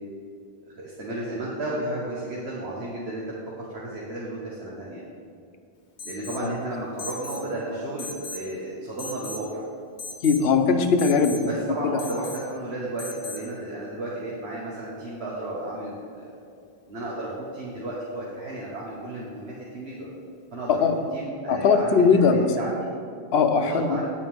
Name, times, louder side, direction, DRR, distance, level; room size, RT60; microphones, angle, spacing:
voice 1, 0.7-3.3 3.6-5.0 6.0-9.6 11.5-16.4 16.9-20.1 20.5-20.8 21.1-21.9 22.3-22.9 23.6-24.1, right 1 dB, 80° right, -5 dB, 1.6 m, -33 dB
Alarm, 6.0-6.5 7.0-7.4 8.0-8.5 9.0-9.5 10.0-10.5 11.0-11.4 12.0-12.4 13.0-13.4, left 3 dB, 50° left, 0.9 m, -38 dB
voice 2, 10.2-11.5 11.8-12.0 20.7-21.0 21.5-22.5 23.3-24.0, left 5 dB, 75° left, 6 dB, 1.0 m, -20 dB
9.9 x 9.0 x 3.6 m, 2.5 s
omnidirectional pair, 1.1 m